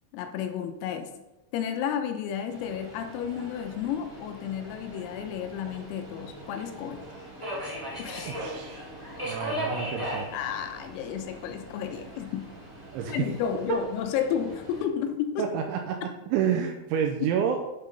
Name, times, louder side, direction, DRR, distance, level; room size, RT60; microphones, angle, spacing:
voice 1, 0.1-1.1 1.5-7.1 8.0-8.4 10.3-12.5 13.1-15.5, left 8 dB, 85° left, 7 dB, 3.6 m, -32 dB
Subway metro underground, 2.5-14.9, equal, 15° right, 0.9 m, -39 dB
voice 2, 8.3-8.9 9.2-10.3 12.9-13.3 13.7-13.8 15.4-17.6, right 8 dB, 85° right, 3 dB, 2.8 m, -29 dB
8.2 x 5.8 x 5.1 m, 0.96 s
omnidirectional pair, 6.0 m